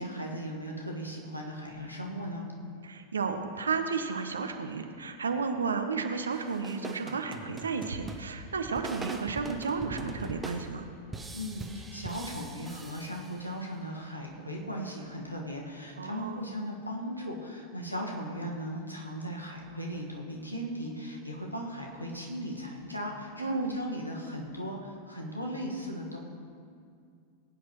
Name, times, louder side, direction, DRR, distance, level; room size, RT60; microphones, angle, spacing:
voice 1, 0.0-2.5 11.3-26.2, equal, 90° left, -1 dB, 1.6 m, -37 dB
voice 2, 2.8-10.9 16.0-16.5 23.4-23.8, right 5 dB, 70° right, 6 dB, 0.8 m, -32 dB
sound 1, 6.3-13.7, right 2 dB, 10° right, 0.9 m, -42 dB
20.0 x 9.3 x 3.1 m, 2.3 s
figure-of-eight pair, 90°, 0 cm